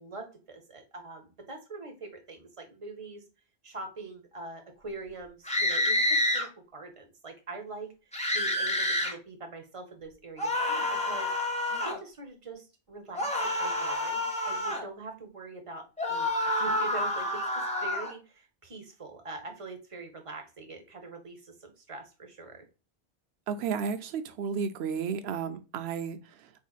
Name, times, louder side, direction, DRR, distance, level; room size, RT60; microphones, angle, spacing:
voice 1, 0.0-3.2 3.6-7.9 8.3-22.6, right 3 dB, 35° right, 0.8 m, -44 dB
sound 1, 5.5-6.5 8.1-9.1 10.4-12.0 13.1-14.8 16.0-18.1, left 1 dB, 10° left, 0.6 m, -28 dB
voice 2, 23.5-26.5, right 6 dB, 80° right, 0.8 m, -33 dB
4.2 x 2.7 x 2.3 m
omnidirectional pair, 1.1 m